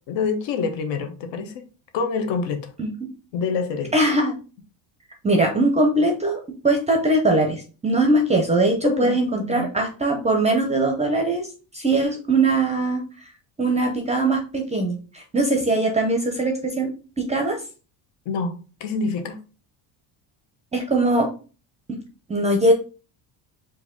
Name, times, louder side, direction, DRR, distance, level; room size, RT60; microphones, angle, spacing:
voice 1, 0.1-1.6 1.9-2.7 3.3-3.9 8.8-9.7 18.2-19.4, left 5 dB, 70° left, 6 dB, 1.0 m, -26 dB
voice 2, 2.8-3.1 3.9-4.4 5.2-11.5 11.7-13.0 13.6-17.6 20.7-21.3 21.9-22.0 22.3-22.7, right 2 dB, 15° right, 2 dB, 0.5 m, -21 dB
4.5 x 2.6 x 3.6 m, 0.36 s
cardioid pair, 160°, 45 cm